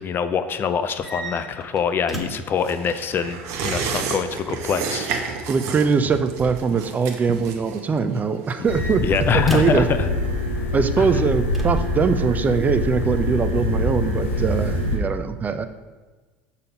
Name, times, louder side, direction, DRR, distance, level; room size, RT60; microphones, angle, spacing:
voice 1, 0.0-5.1 9.0-10.1 11.0-11.1, left 6 dB, 35° left, 11 dB, 0.4 m, -24 dB
sound 1, 0.9-2.6 3.9-4.6 6.1-6.5 8.3-9.9 11.5-12.2, equal, 5° right, 1.4 m, -36 dB
sound 2, 2.6-9.7 10.0-10.1, right 5 dB, 50° right, 0.9 m, -31 dB
voice 2, 5.5-9.0 9.3-9.9 10.7-15.7, right 5 dB, 25° right, 9 dB, 0.4 m, -22 dB
sound 3, 8.6-15.0, left 1 dB, 75° left, 1.3 m, -24 dB
6.5 x 4.1 x 5.1 m, 1.3 s
figure-of-eight pair, 70°, 6 cm